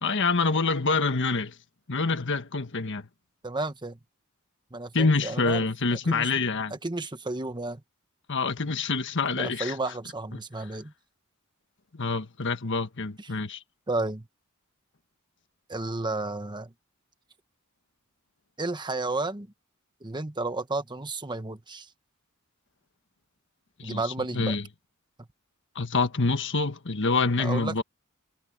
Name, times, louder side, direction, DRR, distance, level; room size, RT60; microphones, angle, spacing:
voice 1, 0.0-1.5 1.9-3.1 4.9-6.7 8.3-9.7 11.9-13.6 23.8-24.0 24.3-24.6 25.7-27.8, left 3 dB, 60° left, 1.5 m, -26 dB
voice 2, 3.4-4.0 4.7-5.7 5.9-6.3 6.7-7.8 9.3-10.9 13.2-13.3 13.9-14.3 15.7-16.7 18.6-19.5 20.0-21.9 23.8-24.5 27.4-27.7, right 2 dB, 20° right, 1.2 m, -32 dB
head